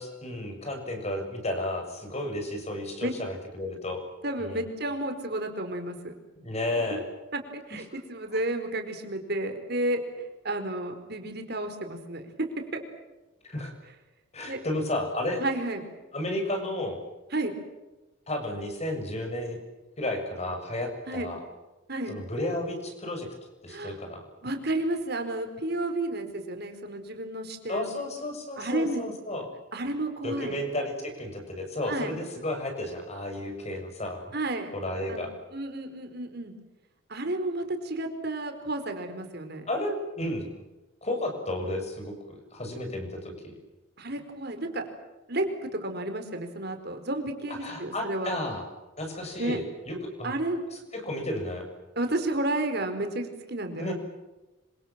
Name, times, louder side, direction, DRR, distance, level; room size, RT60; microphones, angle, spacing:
voice 1, 0.0-4.0 4.4-4.6 6.4-7.0 8.3-8.4 13.5-13.7 14.3-15.4 16.1-17.0 18.3-19.6 20.0-21.4 22.1-23.3 23.6-24.2 27.7-29.5 30.2-34.3 34.7-35.3 39.7-40.6 41.0-43.5 47.5-48.6 49.0-50.3 50.7-51.7 53.8-53.9, left 1 dB, 35° left, 4 dB, 7.1 m, -32 dB
voice 2, 4.2-6.1 6.9-7.0 7.3-12.8 14.5-14.6 15.4-15.8 17.3-17.5 21.1-21.3 21.9-22.1 23.7-23.9 24.4-27.9 28.6-29.0 29.7-30.6 31.9-32.1 34.3-34.7 35.1-35.2 35.5-36.5 37.1-39.7 44.0-44.8 45.3-48.3 49.4-49.6 50.2-50.6 52.0-53.9, right 1 dB, 55° right, 6 dB, 4.5 m, -31 dB
26.5 x 26.5 x 7.6 m, 1.1 s
head